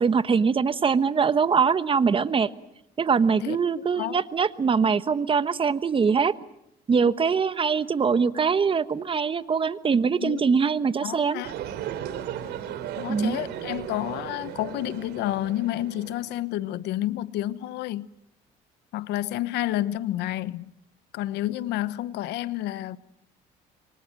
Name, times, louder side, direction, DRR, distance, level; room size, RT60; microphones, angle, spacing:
voice 1, 0.0-2.5 3.0-6.3 6.9-11.4 13.1-13.4, right 5 dB, 30° right, 1.1 m, -23 dB
voice 2, 3.4-4.2 10.2-10.4 11.0-11.5 13.0-18.1 18.9-20.7 21.1-23.0, left 14 dB, 85° left, 1.0 m, -30 dB
sound 1, 11.4-16.4, right 10 dB, 80° right, 3.4 m, -36 dB
28.0 x 24.0 x 7.7 m
cardioid pair, 110°, 17 cm